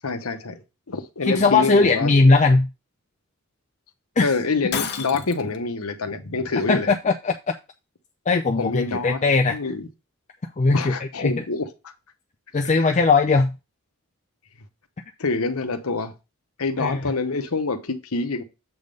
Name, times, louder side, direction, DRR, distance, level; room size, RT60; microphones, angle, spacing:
voice 1, 0.0-2.1 4.2-6.9 8.6-9.2 9.5-9.9 10.7-11.7 12.7-12.9 15.2-16.1 16.6-18.4, left 3 dB, 80° left, 1.0 m, -26 dB
voice 2, 1.2-2.7 4.2-4.3 6.7-7.3 8.3-9.6 10.6-11.3 12.5-13.5 16.8-17.0, left 3 dB, 30° left, 0.5 m, -19 dB
Shatter, 4.7-5.6, left 7 dB, 50° left, 0.9 m, -29 dB
7.9 x 3.6 x 5.2 m
head